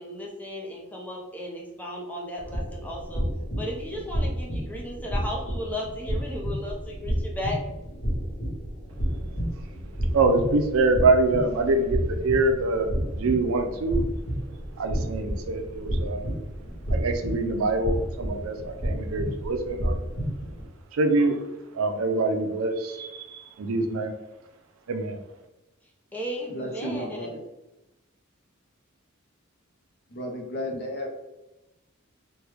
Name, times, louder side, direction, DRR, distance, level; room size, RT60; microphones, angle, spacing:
voice 1, 0.0-3.3 3.6-7.6 26.1-27.3, left 1 dB, 10° left, -2 dB, 0.6 m, -35 dB
sound 1, 2.4-20.7, equal, 70° left, 1.1 m, -31 dB
voice 2, 10.1-14.0 14.8-16.3 16.9-20.0 20.9-21.4 21.7-24.1 24.9-25.2, right 2 dB, 80° right, 6 dB, 0.4 m, -25 dB
voice 3, 26.5-27.4 30.1-31.1, equal, 50° left, 2 dB, 0.6 m, -33 dB
3.2 x 2.2 x 3.3 m, 0.96 s
head